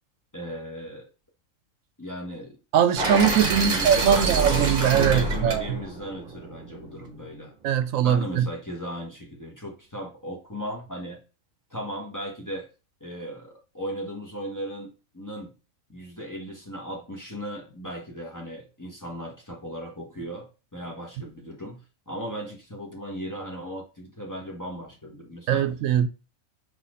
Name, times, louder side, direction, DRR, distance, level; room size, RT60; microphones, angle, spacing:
voice 1, 0.3-1.1 2.0-2.6 3.4-7.5 8.0-11.2 11.7-12.7 13.0-14.9 15.1-15.5 15.9-20.5 20.7-25.7, equal, 15° left, 1.2 m, -36 dB
voice 2, 2.7-5.8 7.6-8.5 25.5-26.1, right 8 dB, 80° right, 1.0 m, -21 dB
sound 1, 3.0-7.0, right 3 dB, 40° right, 1.1 m, -27 dB
4.1 x 3.1 x 3.7 m
omnidirectional pair, 1.4 m